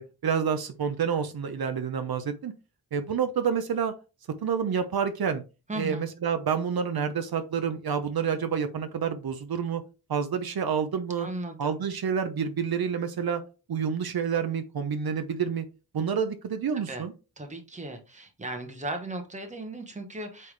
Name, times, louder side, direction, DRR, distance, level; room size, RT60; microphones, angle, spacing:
voice 1, 0.0-2.5 2.9-3.9 4.4-5.4 5.8-9.8 10.1-11.3 11.6-13.4 13.7-15.6 15.9-17.1, right 7 dB, 70° right, 8 dB, 0.8 m, -28 dB
voice 2, 5.7-6.0 11.2-11.7 16.7-17.0 17.4-20.5, right 1 dB, 20° right, 5 dB, 1.1 m, -36 dB
8.4 x 3.5 x 3.3 m, 0.31 s
wide cardioid pair, 170°, 38 cm